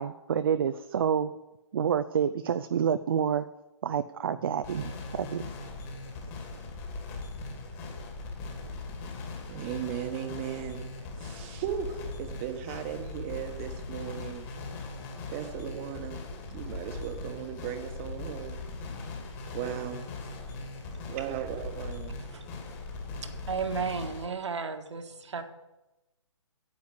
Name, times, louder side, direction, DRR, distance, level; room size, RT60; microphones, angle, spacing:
voice 1, 0.0-1.3 1.7-3.5 3.8-5.5, right 8 dB, 45° right, 11 dB, 0.5 m, -28 dB
sound 1, 4.6-24.2, left 3 dB, 25° left, 2.4 m, -40 dB
voice 2, 9.5-10.9 11.2-14.5 15.3-16.2 16.5-18.6 19.5-20.0 21.1-22.1, right 11 dB, 25° right, 7 dB, 1.2 m, -36 dB
voice 3, 23.5-25.4, right 5 dB, 65° right, 6 dB, 1.6 m, -33 dB
9.7 x 8.0 x 8.4 m, 1.0 s
figure-of-eight pair, 140°, 17 cm